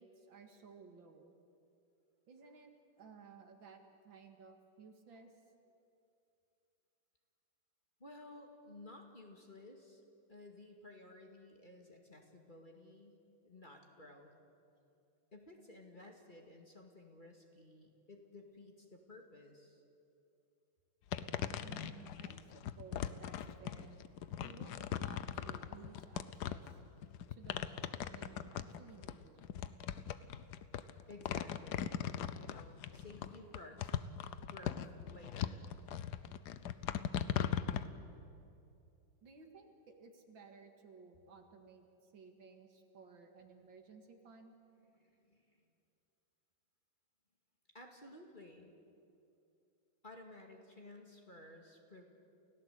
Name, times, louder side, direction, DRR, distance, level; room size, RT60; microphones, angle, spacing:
voice 1, 0.0-1.3 2.3-2.7 3.0-5.3 21.6-24.0 24.4-26.8 27.3-29.4 39.2-44.5, right 5 dB, 70° right, 5 dB, 2.5 m, -57 dB
voice 2, 8.0-10.0 10.3-14.3 15.3-19.8 31.1-32.0 32.4-33.9 34.5-35.6 45.0-45.7 47.7-48.7 50.0-52.0, left 2 dB, 25° left, 2 dB, 2.1 m, -55 dB
sound 1, 21.1-37.9, left 9 dB, 65° left, 1.2 m, -39 dB
29.5 x 16.5 x 8.3 m, 2.6 s
omnidirectional pair, 2.2 m